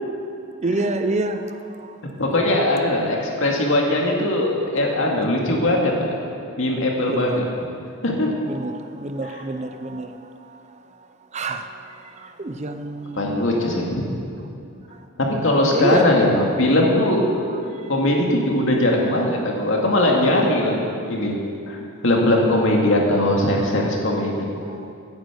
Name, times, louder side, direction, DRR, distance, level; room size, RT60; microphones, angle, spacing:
voice 1, 0.6-1.9 7.1-7.4 8.5-10.1 11.3-11.7 12.2-13.6 15.7-16.1 24.7-24.9, right 2 dB, 35° right, 8 dB, 0.6 m, -27 dB
voice 2, 2.2-6.1 6.6-7.4 8.0-8.4 9.2-9.4 13.2-14.1 15.2-17.4 17.9-20.8 21.1-21.4 21.7-24.5, left 1 dB, 65° left, -1 dB, 2.2 m, -20 dB
10.5 x 9.7 x 8.1 m, 2.5 s
head